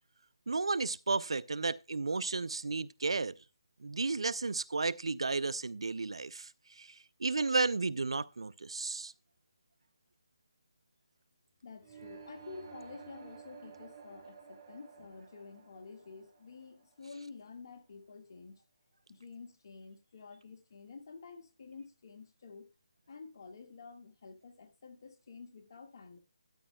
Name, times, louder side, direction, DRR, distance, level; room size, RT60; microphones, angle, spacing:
voice 1, 0.5-3.3 3.8-6.5 6.8-6.9 7.2-9.1, right 3 dB, 80° right, 0.5 m, -33 dB
voice 2, 11.6-18.6 19.1-22.7 23.1-26.2, left 4 dB, 50° left, 1.8 m, -50 dB
sound 1, 11.8-17.7, right 6 dB, 35° right, 3.9 m, -53 dB
12.5 x 9.7 x 2.3 m
figure-of-eight pair, 155°, 3 cm